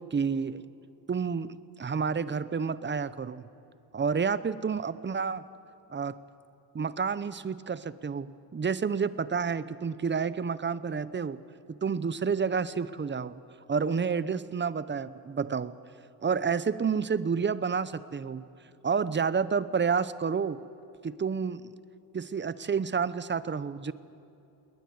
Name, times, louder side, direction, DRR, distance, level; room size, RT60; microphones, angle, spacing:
voice 1, 0.1-0.6 1.1-3.5 3.9-5.4 5.9-6.2 6.7-11.4 11.7-13.4 13.7-15.7 16.2-18.4 18.8-20.6 21.0-21.6 22.1-23.9, right 6 dB, 25° right, 16 dB, 0.7 m, -29 dB
20.0 x 20.0 x 9.4 m, 2.8 s
cardioid pair, 115°, 44 cm